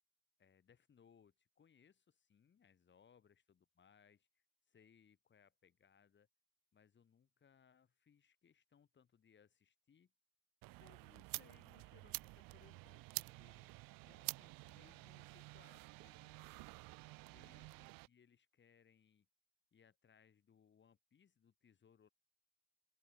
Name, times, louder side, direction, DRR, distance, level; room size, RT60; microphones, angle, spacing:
voice 1, 0.4-6.3 6.7-10.1 10.8-13.7 14.0-16.7 17.3-19.3 19.7-22.1, left 7 dB, 35° left, 7.3 m, -70 dB
sound 1, 10.6-18.1, right 22 dB, 80° right, 0.9 m, -50 dB
open air
cardioid pair, 140°, 34 cm